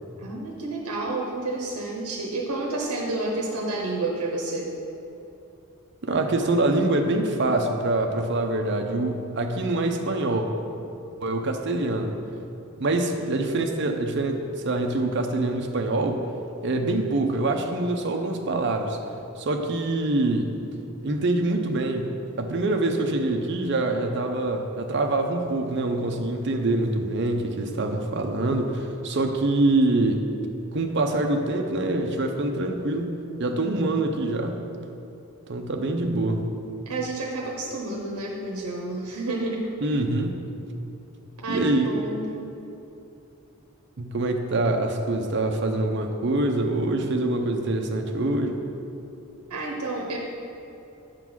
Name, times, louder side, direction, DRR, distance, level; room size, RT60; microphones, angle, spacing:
voice 1, 0.2-4.7 36.9-39.7 41.4-42.3 49.5-50.2, right 2 dB, 85° right, -1 dB, 0.8 m, -30 dB
voice 2, 6.0-10.5 11.2-12.1 12.8-16.2 16.6-19.0 19.4-20.5 21.0-30.3 30.7-33.1 33.4-34.6 35.5-36.5 39.8-40.5 41.5-41.8 44.0-48.6, right 2 dB, 50° right, 4 dB, 0.6 m, -25 dB
8.2 x 3.9 x 6.1 m, 2.8 s
head